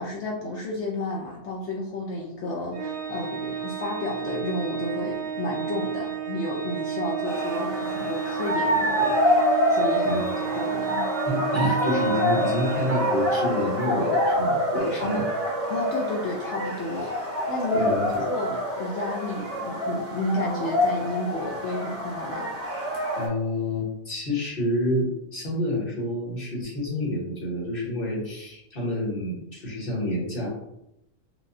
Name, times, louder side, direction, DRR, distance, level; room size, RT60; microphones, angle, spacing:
voice 1, 0.0-10.3 10.5-11.0 15.0-15.2 15.7-17.9 18.3-22.5, left 2 dB, 65° left, -3 dB, 0.8 m, -31 dB
Organ, 2.7-13.5, right 8 dB, 40° right, 0.7 m, -32 dB
sound 1, 7.2-23.3, equal, 10° right, 0.9 m, -26 dB
voice 2, 11.2-15.2 17.7-18.2 23.2-30.5, left 1 dB, 45° left, -4 dB, 1.3 m, -28 dB
4.7 x 2.2 x 2.6 m, 0.82 s
omnidirectional pair, 1.4 m